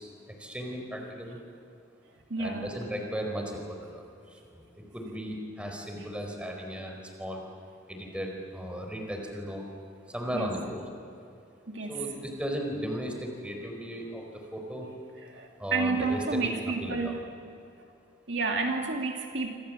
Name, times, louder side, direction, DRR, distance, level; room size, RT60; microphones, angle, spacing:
voice 1, 0.0-1.4 2.4-7.4 7.9-9.6 10.1-10.7 11.9-14.9 15.6-16.5 16.8-17.1, equal, 5° right, 2 dB, 4.5 m, -36 dB
voice 2, 2.3-2.7 6.0-6.1 10.3-10.6 11.7-12.1 15.2-17.2 18.3-19.5, right 3 dB, 65° right, 2 dB, 2.6 m, -30 dB
27.5 x 26.0 x 7.6 m, 2.5 s
head